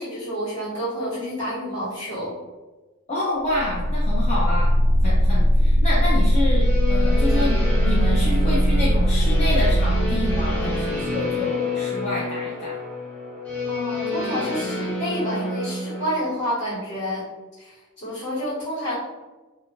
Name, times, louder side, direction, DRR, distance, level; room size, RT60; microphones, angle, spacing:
voice 1, 0.0-2.3 13.7-17.2 17.6-18.9, equal, 50° left, -10 dB, 1.5 m, -29 dB
voice 2, 3.1-4.7 5.0-12.8, left 1 dB, 30° left, -7 dB, 0.4 m, -28 dB
sound 1, 3.5-11.2, equal, 75° right, 0.4 m, -20 dB
sound 2, 6.6-16.1, left 2 dB, 5° left, 0.8 m, -29 dB
2.5 x 2.4 x 2.9 m, 1.2 s
head